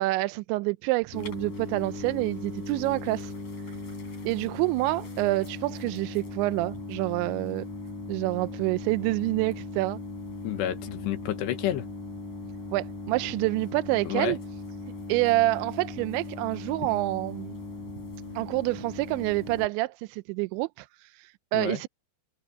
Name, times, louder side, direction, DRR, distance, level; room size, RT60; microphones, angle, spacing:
voice 1, 0.0-3.3 4.2-7.6 8.1-10.0 12.7-14.4 15.1-17.6 18.4-21.9, right 20 dB, 85° right, 2.9 m, -27 dB
sound 1, 1.1-19.7, left 3 dB, 45° left, 6.8 m, -38 dB
voice 2, 10.4-11.9 14.0-14.4 21.5-21.8, left 12 dB, 75° left, 3.3 m, -30 dB
omnidirectional pair, 5.3 m